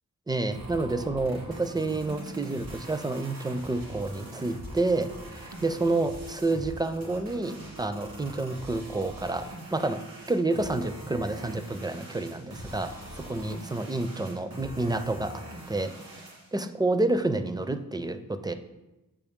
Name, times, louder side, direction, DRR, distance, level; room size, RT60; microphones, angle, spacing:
voice 1, 0.3-5.1 5.3-10.0 10.3-15.9 16.5-18.5, right 2 dB, 10° right, 10 dB, 0.4 m, -29 dB
sound 1, 0.5-16.5, right 1 dB, 85° right, 1.9 m, -43 dB
7.1 x 5.1 x 3.5 m, 1.0 s
wide cardioid pair, 70°, 35 cm